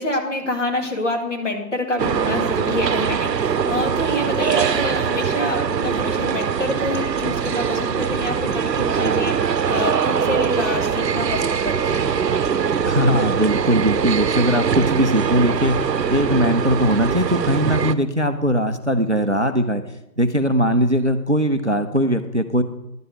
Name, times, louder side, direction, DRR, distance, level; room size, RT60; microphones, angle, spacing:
voice 1, 0.0-12.2, left 2 dB, 45° left, 2 dB, 2.0 m, -27 dB
sound 1, 2.0-17.9, right 7 dB, 75° right, 0.8 m, -22 dB
voice 2, 12.9-15.8 16.1-19.8 20.2-22.6, equal, 45° right, 9 dB, 0.5 m, -20 dB
11.0 x 5.4 x 7.6 m, 0.85 s
figure-of-eight pair, 180°, 50 cm